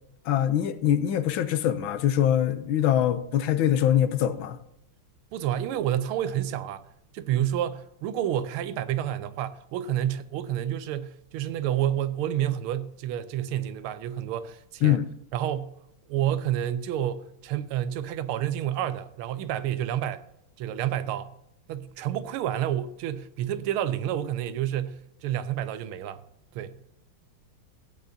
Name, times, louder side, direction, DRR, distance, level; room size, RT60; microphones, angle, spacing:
voice 1, 0.3-4.6 14.8-15.1, left 10 dB, 75° left, 1.4 m, -23 dB
voice 2, 5.3-6.8 7.1-15.0 15.3-15.7 16.1-20.2 20.6-21.3 21.7-26.2 26.5-26.8, right 11 dB, 85° right, 1.5 m, -29 dB
15.0 x 8.3 x 2.7 m
omnidirectional pair, 2.3 m